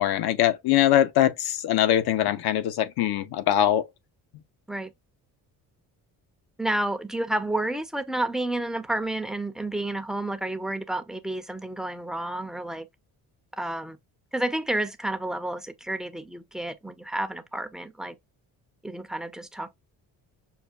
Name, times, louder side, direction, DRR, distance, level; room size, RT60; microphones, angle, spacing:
voice 1, 0.0-3.9, left 12 dB, 65° left, 0.7 m, -22 dB
voice 2, 6.6-12.9 13.6-14.0 14.3-18.2 18.8-19.7, right 1 dB, ahead, 0.5 m, -30 dB
5.6 x 2.3 x 2.3 m
supercardioid pair, 75°, 41 cm